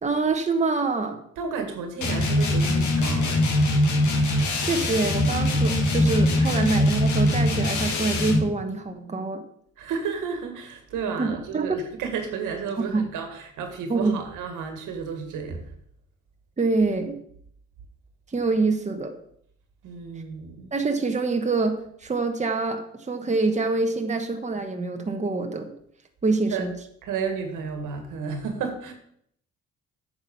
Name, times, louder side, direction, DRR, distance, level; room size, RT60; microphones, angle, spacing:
voice 1, 0.0-1.2 4.6-9.4 11.2-11.8 12.9-13.0 13.9-14.2 16.6-17.2 18.3-19.2 20.7-25.7 26.2-26.7, right 3 dB, 25° right, 5 dB, 1.2 m, -25 dB
voice 2, 1.4-3.4 6.4-6.7 9.8-15.6 19.8-20.7 26.5-26.7 27.0-28.9, right 5 dB, 85° right, 5 dB, 1.9 m, -32 dB
sound 1, 2.0-8.5, left 1 dB, 75° left, 2.3 m, -22 dB
8.8 x 6.1 x 5.5 m, 0.68 s
cardioid pair, 90°, 30 cm